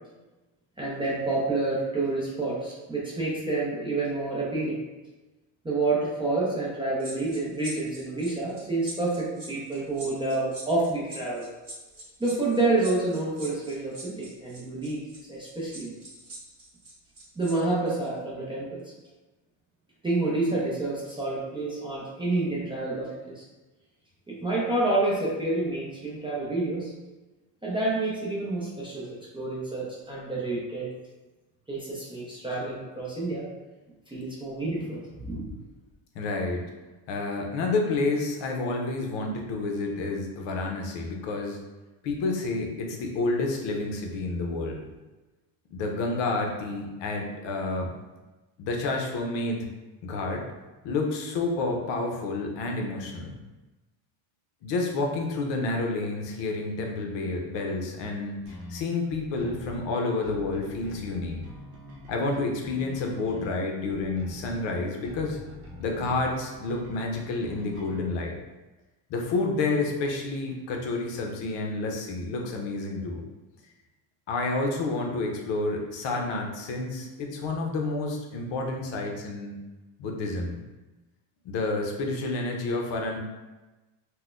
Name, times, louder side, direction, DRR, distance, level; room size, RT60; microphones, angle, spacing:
voice 1, 0.8-4.8 5.6-11.5 12.2-15.0 15.3-15.9 17.4-18.9 20.0-23.4 24.3-26.9 27.6-30.9 31.7-33.5 34.1-35.4, right 2 dB, 10° right, -7 dB, 0.4 m, -28 dB
sound 1, 7.0-17.5 17.9-18.1, right 1 dB, 30° right, 1.2 m, -43 dB
voice 2, 36.1-36.6 37.1-41.6 42.0-44.8 45.7-47.9 48.6-49.7 50.0-50.5 50.8-53.4 54.6-61.4 62.1-65.4 65.8-68.4 69.1-73.2 74.3-79.6 80.0-80.6 81.4-83.2, left 3 dB, 65° left, 1 dB, 0.7 m, -29 dB
sound 2, 58.5-68.1, left 1 dB, 85° right, 0.8 m, -45 dB
3.9 x 2.2 x 2.4 m, 1.1 s
cardioid pair, 130°, 48 cm